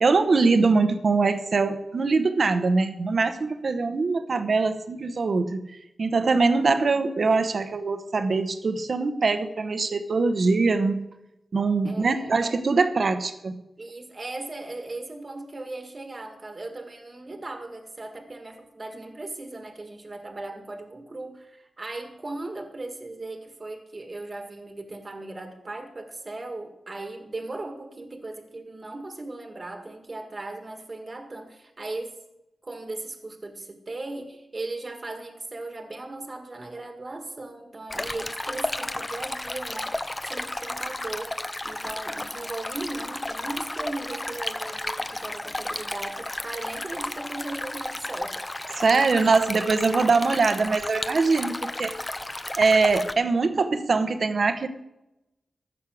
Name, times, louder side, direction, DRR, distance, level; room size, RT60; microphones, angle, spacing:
voice 1, 0.0-5.7 6.0-11.0 11.5-13.6 48.7-52.0 52.6-54.7, right 4 dB, 60° right, 9 dB, 1.1 m, -22 dB
voice 2, 11.9-12.5 13.8-32.2 32.6-41.4 41.6-48.4, right 2 dB, 40° right, 5 dB, 1.6 m, -37 dB
Stream, 37.9-53.1, left 1 dB, 20° left, 0.7 m, -33 dB
14.5 x 6.5 x 6.2 m, 0.91 s
cardioid pair, 70°, 0 cm